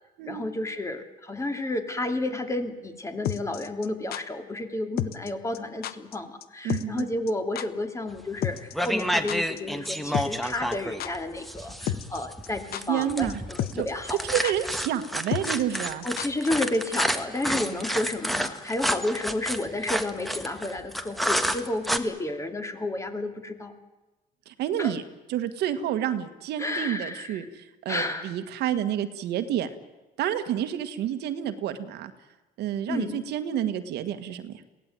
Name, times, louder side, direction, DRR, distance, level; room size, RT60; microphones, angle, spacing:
voice 1, 0.3-14.5 16.0-23.7 24.8-24.9 26.6-27.5 27.9-28.3 32.9-33.2, left 2 dB, 15° left, 7 dB, 2.6 m, -31 dB
sound 1, 3.2-4.2 5.0-5.3 5.5-5.6 5.8-6.2 6.4-6.5 6.7-7.0 7.3-7.4 7.6-7.7 8.4-9.6 9.9-10.0 10.1-10.7 11.0-11.1 11.9-12.2 12.4-13.0 13.3-13.4 13.6-13.9 14.2-14.3 14.4-14.5 15.3-16.5 16.7-16.8, left 11 dB, 65° left, 1.1 m, -31 dB
voice 2, 6.6-7.1 12.9-13.4 13.7-13.9 14.2-16.1 17.7-17.8 24.5-25.0 25.3-29.7 30.2-32.1 32.6-34.6, right 10 dB, 75° right, 9 dB, 1.7 m, -29 dB
sound 2, 8.2-8.4 8.7-22.0, equal, ahead, 1.5 m, -29 dB
22.5 x 17.0 x 9.2 m, 1.1 s
cardioid pair, 110°, 17 cm